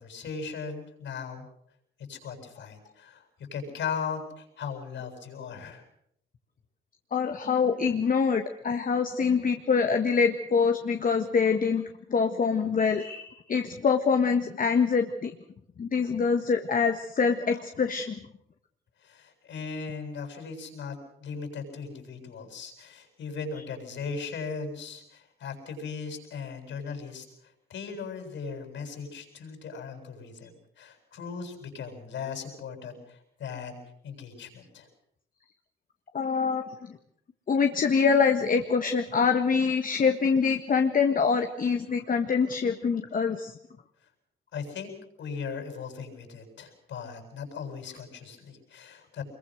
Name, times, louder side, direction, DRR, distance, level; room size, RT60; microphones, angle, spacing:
voice 1, 0.0-1.5 2.1-3.2 3.5-5.8 19.0-27.2 27.7-30.5 30.8-33.8 34.0-34.9 44.5-44.9 45.2-49.2, left 5 dB, 70° left, 4 dB, 7.8 m, -38 dB
voice 2, 7.1-11.8 12.1-15.3 15.8-18.2 36.1-36.6 37.5-43.5, left 5 dB, 45° left, 5 dB, 1.6 m, -25 dB
24.5 x 22.5 x 6.5 m, 0.72 s
cardioid pair, 90°, 20 cm